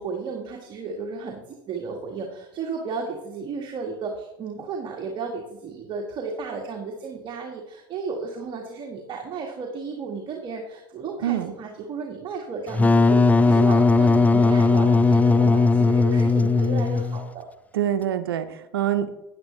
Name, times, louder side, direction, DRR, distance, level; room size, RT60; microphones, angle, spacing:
voice 1, 0.0-17.5, right 4 dB, 40° right, 1 dB, 1.7 m, -34 dB
voice 2, 11.2-11.5 17.7-19.1, right 11 dB, 85° right, 11 dB, 0.7 m, -25 dB
Wind instrument woodwind instrument, 12.7-17.3, left 3 dB, 10° left, 0.5 m, -18 dB
9.6 x 9.4 x 3.3 m, 0.92 s
hypercardioid pair, 85°, 12 cm